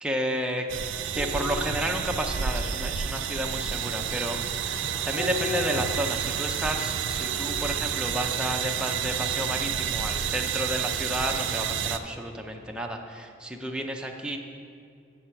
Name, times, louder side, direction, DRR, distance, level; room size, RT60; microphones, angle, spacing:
voice 1, 0.0-0.7 1.1-14.4, equal, 5° right, 2 dB, 0.5 m, -31 dB
sound 1, 0.7-12.0, right 7 dB, 90° right, 0.4 m, -30 dB
sound 2, 1.1-9.8 10.1-10.3, left 5 dB, 30° left, 1.7 m, -41 dB
7.6 x 6.2 x 5.6 m, 2.4 s
head